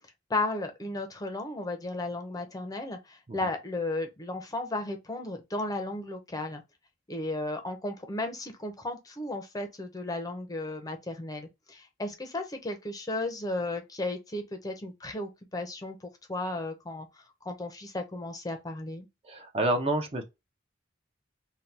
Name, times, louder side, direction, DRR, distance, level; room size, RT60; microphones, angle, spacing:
voice 1, 0.3-6.6 7.1-16.0 16.3-17.1 17.4-19.1, left 2 dB, 20° left, 0.6 m, -34 dB
voice 2, 19.3-20.2, right 1 dB, 30° right, 0.5 m, -28 dB
2.7 x 2.2 x 3.2 m
head